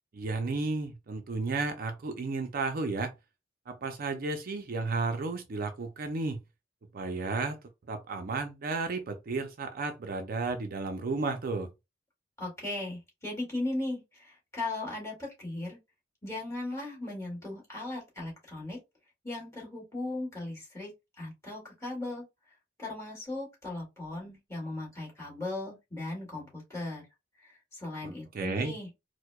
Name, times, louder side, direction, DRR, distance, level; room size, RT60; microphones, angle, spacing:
voice 1, 0.1-3.1 3.7-6.4 6.9-7.6 7.9-11.7 28.0-28.7, right 3 dB, 50° right, 0.5 m, -33 dB
voice 2, 12.4-15.8 16.2-18.8 19.2-20.9 21.2-27.0 27.4-28.9, left 2 dB, 15° left, 2.1 m, -37 dB
4.5 x 2.1 x 2.3 m
head